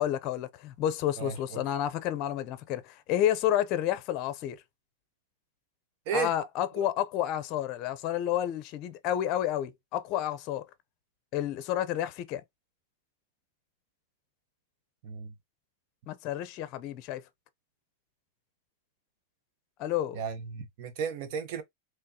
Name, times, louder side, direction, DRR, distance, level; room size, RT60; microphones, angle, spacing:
voice 1, 0.0-4.6 6.1-10.6 11.3-12.4 16.1-17.2 19.8-20.2, left 11 dB, 40° left, 0.7 m, -30 dB
voice 2, 20.1-21.6, right 6 dB, 50° right, 1.1 m, -33 dB
3.6 x 3.1 x 2.9 m
supercardioid pair, 140°, 0 cm